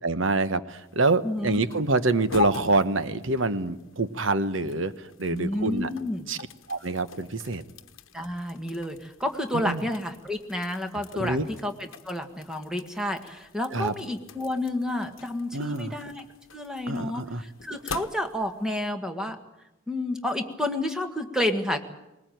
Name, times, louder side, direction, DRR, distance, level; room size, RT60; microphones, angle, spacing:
voice 1, 0.0-5.9 6.3-6.4 6.7-7.6 9.5-9.8 11.1-11.5 13.7-13.9 15.5-15.9 16.9-17.4, right 3 dB, 65° right, 12 dB, 1.1 m, -26 dB
sound 1, 0.7-18.7, left 5 dB, 70° left, 1.1 m, -42 dB
voice 2, 1.2-1.6 5.3-6.3 8.1-11.4 11.6-16.3 16.5-19.4 19.9-21.8, left 1 dB, 5° right, 5 dB, 1.8 m, -30 dB
20.5 x 20.0 x 9.3 m, 0.92 s
head